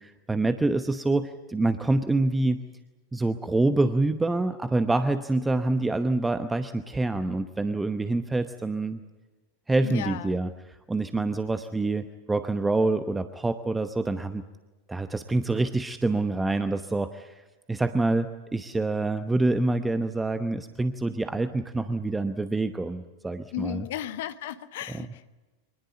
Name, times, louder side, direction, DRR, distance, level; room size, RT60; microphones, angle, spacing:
voice 1, 0.0-2.7 3.1-9.0 9.7-14.4 14.9-23.9 24.9-25.1, right 2 dB, 10° right, 10 dB, 0.9 m, -26 dB
voice 2, 9.8-10.4 23.5-25.3, left 11 dB, 55° left, 11 dB, 1.4 m, -35 dB
25.0 x 20.0 x 8.2 m, 1.2 s
figure-of-eight pair, 90°, 0 cm